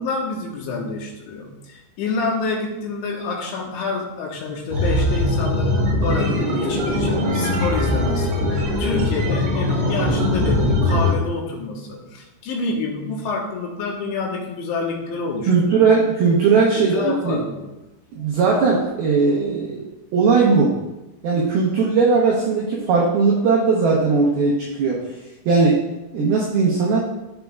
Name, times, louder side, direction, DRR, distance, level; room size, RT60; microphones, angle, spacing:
voice 1, 0.0-15.8 16.7-17.7, left 3 dB, 75° left, -2 dB, 3.3 m, -27 dB
sound 1, 4.7-11.1, left 1 dB, 60° right, 4.5 m, -21 dB
voice 2, 15.5-17.4 18.1-19.9 20.1-20.8 21.2-25.1 25.5-25.8 26.1-27.0, right 4 dB, 80° right, -3 dB, 2.2 m, -18 dB
15.0 x 5.3 x 2.3 m, 0.99 s
omnidirectional pair, 5.7 m